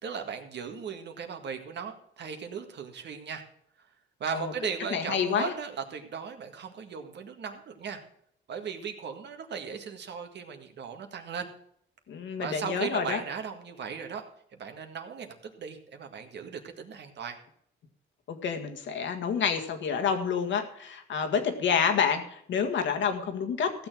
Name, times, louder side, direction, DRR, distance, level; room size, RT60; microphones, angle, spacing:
voice 1, 0.0-3.4 4.2-8.0 8.5-11.5 12.4-14.2 14.6-17.4, right 6 dB, 60° right, 5 dB, 1.8 m, -37 dB
voice 2, 4.9-5.5 12.1-13.2 18.3-23.9, left 6 dB, 70° left, 5 dB, 1.8 m, -28 dB
15.0 x 6.9 x 6.2 m, 0.68 s
cardioid pair, 90°, 20 cm